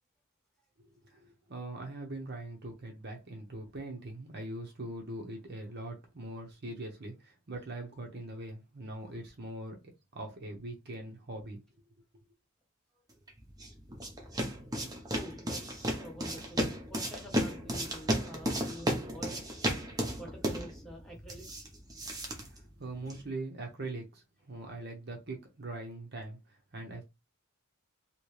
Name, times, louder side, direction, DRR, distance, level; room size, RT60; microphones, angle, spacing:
voice 1, 1.1-9.8 10.1-11.6 22.4-26.4 26.7-27.0, right 2 dB, 50° right, 0.8 m, -42 dB
sound 1, 13.3-23.3, equal, 15° right, 0.7 m, -35 dB
voice 2, 15.1-19.5 20.2-21.7, equal, ahead, 1.1 m, -47 dB
2.9 x 2.9 x 3.1 m
head